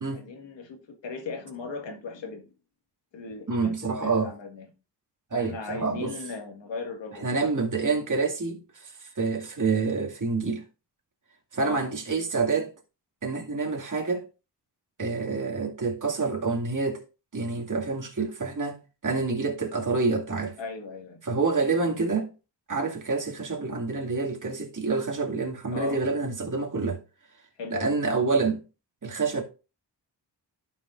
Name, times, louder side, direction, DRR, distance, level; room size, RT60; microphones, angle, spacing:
voice 1, 0.1-0.8 1.0-2.5 3.1-4.7 5.3-7.3 11.6-11.8 20.6-21.2 25.7-26.0 27.6-28.0, left 4 dB, 85° left, 1.9 m, -37 dB
voice 2, 3.5-4.3 5.3-6.2 7.1-10.6 11.5-12.7 13.2-14.3 15.0-17.0 17.3-20.6 21.2-22.3 22.7-27.0 27.7-28.6 29.0-29.4, right 4 dB, 45° right, 2.3 m, -27 dB
11.5 x 6.0 x 2.5 m
cardioid pair, 60°, 43 cm